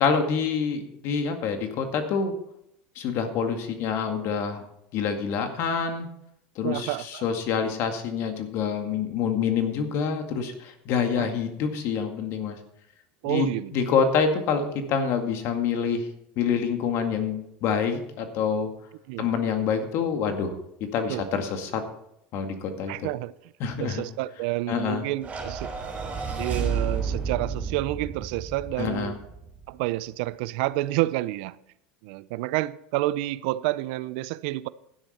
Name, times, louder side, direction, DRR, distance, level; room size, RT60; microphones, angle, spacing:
voice 1, 0.0-2.3 3.0-4.6 4.9-6.1 6.6-12.6 13.3-16.1 16.4-18.7 19.2-20.6 20.9-21.8 22.3-22.9 23.6-24.0 24.7-25.0 28.8-29.2, left 6 dB, 55° left, 2.0 m, -26 dB
voice 2, 6.6-7.3 11.2-11.3 13.2-13.7 19.1-19.3 21.1-21.2 22.9-23.3 23.8-25.7 26.4-29.1 29.7-31.6 32.0-34.7, right 17 dB, 70° right, 0.5 m, -29 dB
sound 1, 25.2-29.6, right 5 dB, 25° right, 5.6 m, -31 dB
12.0 x 10.0 x 4.4 m
supercardioid pair, 115°, 5 cm